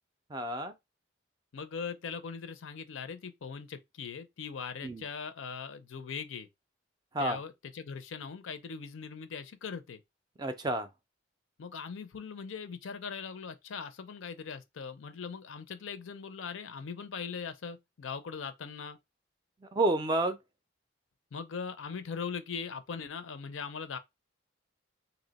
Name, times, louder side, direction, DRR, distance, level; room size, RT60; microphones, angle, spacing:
voice 1, 0.3-0.7 4.8-5.0 7.1-7.4 10.4-10.9 19.7-20.4, right 2 dB, 20° right, 0.4 m, -29 dB
voice 2, 1.5-6.5 7.2-10.0 11.6-19.0 21.3-24.0, left 6 dB, 80° left, 0.5 m, -40 dB
2.8 x 2.1 x 3.9 m
head